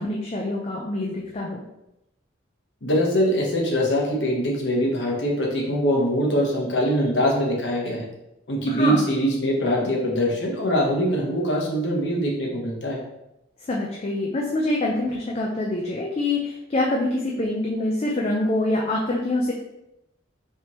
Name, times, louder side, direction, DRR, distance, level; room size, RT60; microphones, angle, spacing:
voice 1, 0.0-1.6 8.7-9.0 13.7-19.5, left 2 dB, 35° left, -2 dB, 0.4 m, -25 dB
voice 2, 2.8-8.1 8.5-13.0, equal, 65° left, -2 dB, 1.0 m, -23 dB
4.4 x 3.3 x 3.0 m, 0.87 s
head